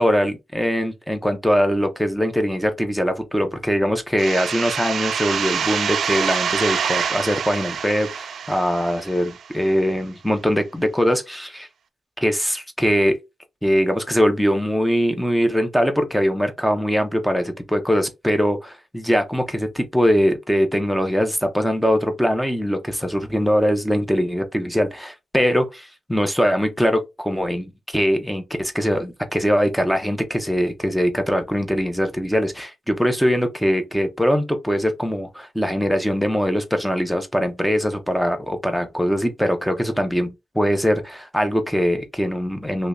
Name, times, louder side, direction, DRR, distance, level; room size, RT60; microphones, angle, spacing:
voice 1, 0.0-11.7 12.2-13.2 13.6-42.9, equal, ahead, 0.7 m, -22 dB
sound 1, 4.2-9.7, right 7 dB, 90° right, 0.4 m, -26 dB
3.1 x 2.7 x 3.5 m
wide cardioid pair, 135°, 0 cm